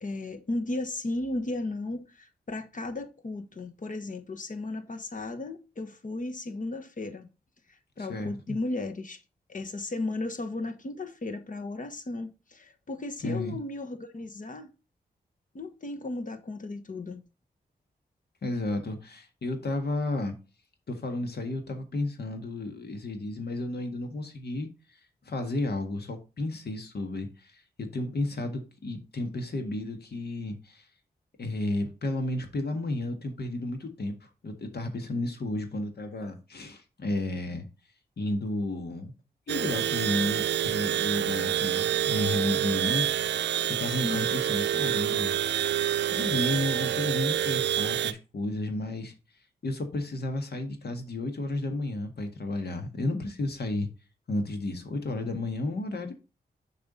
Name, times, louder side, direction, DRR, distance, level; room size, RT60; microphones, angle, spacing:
voice 1, 0.0-7.3 7.7-9.2 9.5-14.7 15.5-17.2 43.9-44.3, left 2 dB, 50° left, 1.3 m, -35 dB
voice 2, 8.0-8.6 13.2-13.6 18.4-20.3 20.9-25.0 25.3-30.9 31.4-37.7 38.2-39.1 39.5-45.7 46.1-49.1 49.6-53.9 54.3-56.1, left 2 dB, 65° left, 1.7 m, -32 dB
sound 1, 39.5-48.1, right 11 dB, 80° right, 0.5 m, -27 dB
6.9 x 4.9 x 4.1 m
cardioid pair, 45°, 18 cm